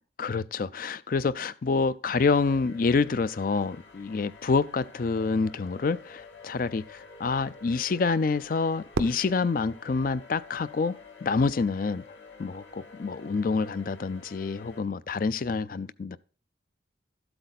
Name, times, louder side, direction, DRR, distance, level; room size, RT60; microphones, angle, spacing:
voice 1, 0.2-10.9 11.2-12.0 12.4-16.2, left 4 dB, 45° left, 0.4 m, -27 dB
sound 1, 2.3-14.8, left 4 dB, 75° left, 2.3 m, -49 dB
Fireworks, 8.9-11.1, right 3 dB, 90° right, 0.7 m, -37 dB
13.0 x 7.9 x 4.1 m
head